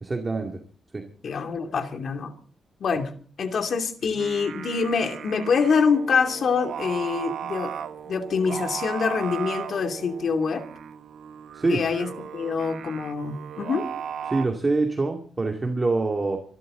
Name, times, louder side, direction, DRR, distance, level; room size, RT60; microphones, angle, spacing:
voice 1, 0.0-0.6 0.9-1.1 11.5-11.8 14.3-16.4, right 3 dB, 25° right, 3 dB, 2.3 m, -25 dB
voice 2, 1.2-2.3 2.8-3.1 3.4-7.7 8.0-10.6 11.7-13.9, left 5 dB, 60° left, 6 dB, 2.7 m, -25 dB
Singing, 4.0-14.5, right 8 dB, 80° right, 1.2 m, -37 dB
25.5 x 12.5 x 3.9 m, 0.43 s
cardioid pair, 115°, 0 cm